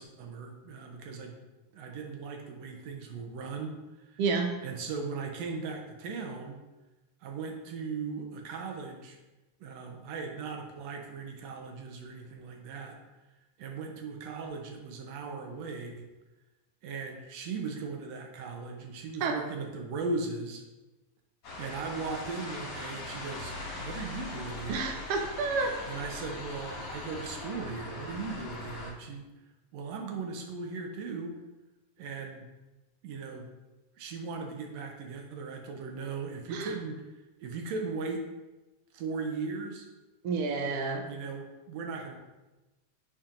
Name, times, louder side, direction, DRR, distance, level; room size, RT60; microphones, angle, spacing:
voice 1, 0.0-1.4 1.7-3.8 4.1-4.2 4.6-6.6 7.2-9.2 9.6-13.0 13.6-16.1 16.8-20.6 21.5-24.9 25.9-29.3 29.7-31.4 32.0-32.5 33.0-33.5 34.0-37.0 37.4-38.3 38.9-39.9 41.0-42.2, right 4 dB, 70° right, 2 dB, 1.8 m, -38 dB
voice 2, 4.2-4.5 19.2-19.4 24.7-25.8 36.5-36.7 40.2-41.0, right 4 dB, 85° right, 3 dB, 1.3 m, -29 dB
sound 1, 21.4-28.9, left 2 dB, 50° left, 2.9 m, -40 dB
9.9 x 4.4 x 2.5 m, 1.1 s
omnidirectional pair, 3.5 m